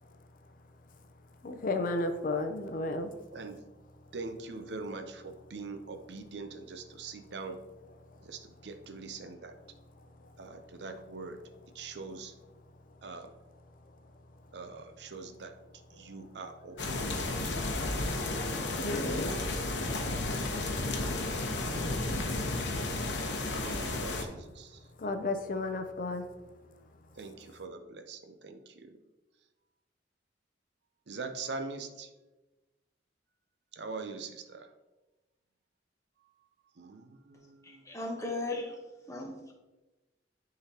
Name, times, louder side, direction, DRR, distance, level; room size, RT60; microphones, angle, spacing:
voice 1, 1.4-3.1 18.8-19.4 25.0-26.2, left 2 dB, 50° left, 7 dB, 0.5 m, -32 dB
voice 2, 3.3-3.6 4.1-7.6 8.2-9.5 10.4-11.4 11.7-12.3 13.0-13.3 14.5-15.6 15.9-17.5 19.0-20.2 21.5-22.4 23.6-24.8 27.2-29.0 31.1-32.1 33.7-34.7 36.8-38.0, right 3 dB, 65° right, 6 dB, 0.6 m, -43 dB
sound 1, 16.8-24.2, left 2 dB, 75° left, 0.8 m, -32 dB
voice 3, 37.6-38.8 39.1-39.5, left 2 dB, 15° left, 1 dB, 0.9 m, -37 dB
10.0 x 3.9 x 2.8 m, 1.1 s
head